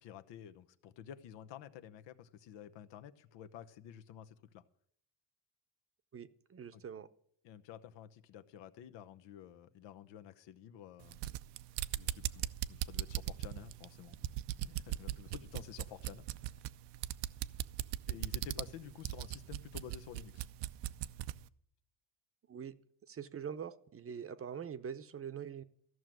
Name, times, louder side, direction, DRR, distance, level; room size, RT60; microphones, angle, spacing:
voice 1, 0.0-4.6 6.7-6.8 7.4-11.2 11.9-14.3 14.6-16.6 18.1-20.4, left 10 dB, 80° left, 1.0 m, -51 dB
voice 2, 6.1-7.1 22.5-22.7 23.1-25.6, right 7 dB, 30° right, 0.8 m, -44 dB
sound 1, 11.0-21.4, right 14 dB, 70° right, 0.6 m, -39 dB
14.0 x 6.3 x 9.1 m
cardioid pair, 115°, 43 cm